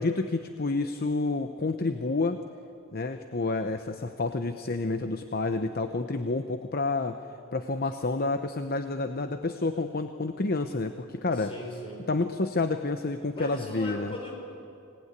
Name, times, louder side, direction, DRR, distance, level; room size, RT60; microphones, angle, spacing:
voice 1, 0.0-2.4 2.9-7.2 7.5-11.5 12.1-14.1, left 3 dB, 45° left, 8 dB, 0.9 m, -29 dB
voice 2, 11.3-12.0 13.3-14.3, left 1 dB, 25° left, 0 dB, 5.7 m, -39 dB
25.5 x 18.5 x 9.7 m, 2.7 s
head